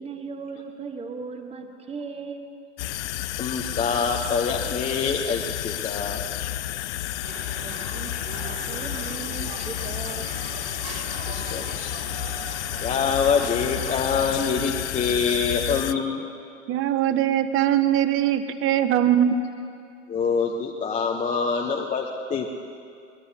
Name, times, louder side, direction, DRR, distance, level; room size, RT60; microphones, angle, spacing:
voice 1, 0.0-2.5 7.6-10.3, right 5 dB, 15° right, 5 dB, 1.3 m, -37 dB
sound 1, 2.8-15.9, left 13 dB, 65° left, 0.6 m, -31 dB
voice 2, 3.4-6.2 11.3-11.9 12.8-16.3 20.1-22.5, left 5 dB, 20° left, 1 dB, 0.9 m, -25 dB
sound 2, 7.2-14.0, right 6 dB, 55° right, 2.8 m, -40 dB
voice 3, 16.7-19.4, right 10 dB, 35° right, 11 dB, 0.9 m, -21 dB
22.5 x 20.0 x 2.8 m, 2.4 s
hypercardioid pair, 100°, 37 cm